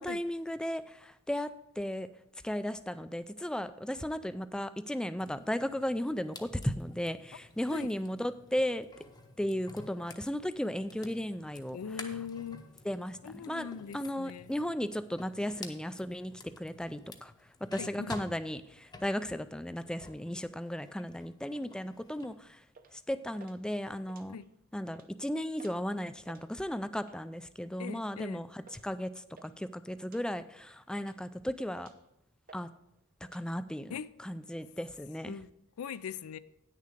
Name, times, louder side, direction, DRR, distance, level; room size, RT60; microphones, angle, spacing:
voice 1, 0.0-2.1 2.4-8.9 9.4-11.8 12.9-13.2 13.5-13.7 13.9-17.3 17.7-22.6 22.9-24.4 24.7-31.9 32.5-32.7 33.3-33.9 34.2-35.4, equal, 5° left, 0.3 m, -35 dB
sound 1, 5.2-20.3 20.7-22.3, left 3 dB, 20° left, 0.7 m, -51 dB
voice 2, 11.7-12.6 13.2-14.5 17.8-18.1 24.3-24.5 27.8-28.4 33.9-34.1 35.3-35.5 35.8-36.4, left 7 dB, 75° left, 0.4 m, -41 dB
sound 2, 22.1-22.3 22.7-23.0 23.4-23.6 24.0-24.6 24.9-25.1 25.6-25.8 26.1-26.5 27.0-27.3 27.9-28.1 28.7-28.8 29.1-29.5 30.0-30.2 30.7-31.3 31.7-32.1 32.5-32.7 32.9-33.4, right 4 dB, 40° right, 0.7 m, -56 dB
9.3 x 6.6 x 5.1 m
head